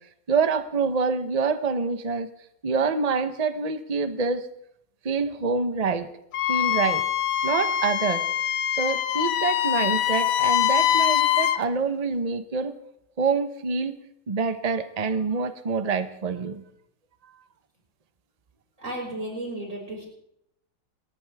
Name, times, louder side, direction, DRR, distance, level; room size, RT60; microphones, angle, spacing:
voice 1, 0.3-2.3 2.6-4.4 5.0-6.1 6.5-7.0 7.4-8.2 8.7-12.7 13.2-13.9 14.3-16.6, right 4 dB, 70° right, 10 dB, 0.3 m, -26 dB
Wind instrument woodwind instrument, 6.3-11.6, left 11 dB, 75° left, 1.5 m, -23 dB
voice 2, 18.8-20.1, right 1 dB, 35° right, -2 dB, 6.1 m, -33 dB
30.0 x 14.0 x 3.5 m, 0.76 s
omnidirectional pair, 2.3 m